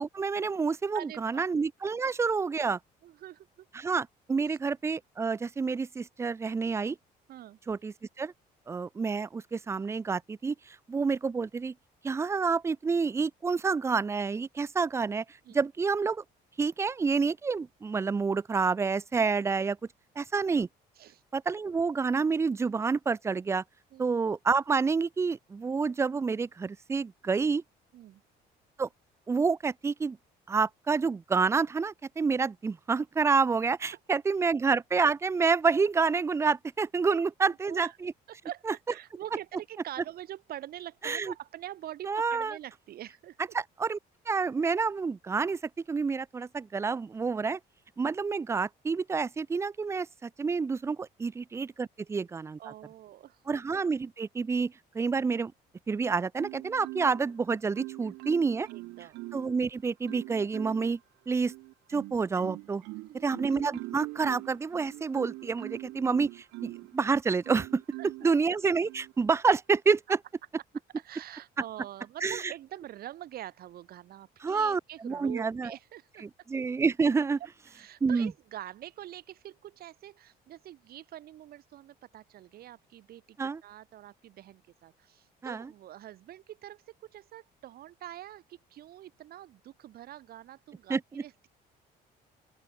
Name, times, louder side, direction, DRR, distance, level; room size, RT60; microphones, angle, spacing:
voice 1, 0.0-2.8 3.7-7.0 7.7-8.3 8.7-11.7 12.0-15.2 15.5-16.2 16.6-19.8 20.2-20.7 21.3-23.6 24.0-27.6 28.8-28.9 29.3-30.2 30.5-38.1 38.7-38.8 41.0-41.3 42.1-42.6 43.5-44.0 44.3-45.6 45.9-47.6 48.0-52.7 53.5-55.5 55.9-58.7 59.3-61.0 61.3-61.5 61.9-62.8 63.1-67.8 68.2-70.2 72.2-72.5 74.4-75.7 76.2-77.4 78.0-78.3 83.4-83.6 85.4-85.7 90.9-91.2, right 5 dB, 15° right, 0.3 m, -28 dB
voice 2, 0.9-1.5 3.0-3.5 4.5-4.6 7.3-7.6 15.5-15.6 21.0-21.2 23.9-24.2 27.9-28.2 37.1-38.0 38.3-43.4 52.6-53.4 58.7-59.2 63.0-63.4 68.0-68.3 71.0-76.2 77.7-91.5, right 13 dB, 65° right, 1.9 m, -45 dB
Marimba xylophone, 56.4-57.3 57.8-59.6 60.1-61.0 61.5-66.9 67.4-68.3 68.9-69.1, right 22 dB, 90° right, 0.8 m, -42 dB
open air
cardioid pair, 110°, 17 cm